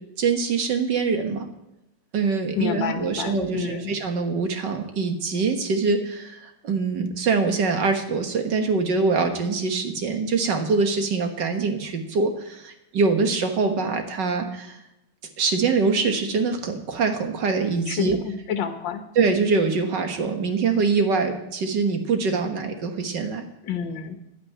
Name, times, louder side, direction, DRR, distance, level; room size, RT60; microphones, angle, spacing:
voice 1, 0.2-1.5 2.1-14.8 15.4-18.2 19.2-23.4, right 4 dB, 55° right, 6 dB, 2.0 m, -24 dB
voice 2, 2.6-3.9 17.9-19.0 23.6-24.2, left 7 dB, 60° left, 7 dB, 1.8 m, -29 dB
11.0 x 8.6 x 9.5 m, 0.89 s
omnidirectional pair, 2.4 m